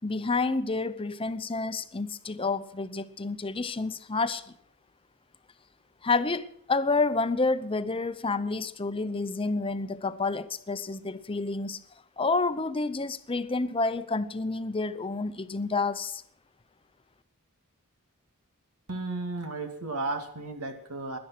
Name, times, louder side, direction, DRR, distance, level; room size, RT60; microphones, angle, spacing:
voice 1, 0.0-4.4 6.0-11.8 12.2-16.2, left 3 dB, 25° left, 12 dB, 0.7 m, -29 dB
voice 2, 18.9-21.2, right 3 dB, 85° right, 5 dB, 2.4 m, -34 dB
17.5 x 11.5 x 5.9 m, 0.69 s
head